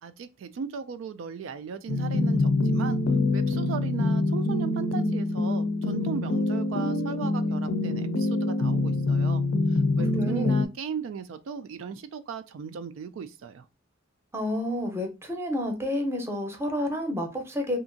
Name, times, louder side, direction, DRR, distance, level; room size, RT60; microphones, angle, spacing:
voice 1, 0.0-3.0 3.3-9.4 9.7-13.7, right 6 dB, 85° right, 0.3 m, -37 dB
sound 1, 1.9-10.7, left 2 dB, 75° left, 0.4 m, -25 dB
voice 2, 10.1-10.5 14.3-17.8, left 1 dB, 15° right, 0.6 m, -30 dB
2.7 x 2.5 x 2.5 m
head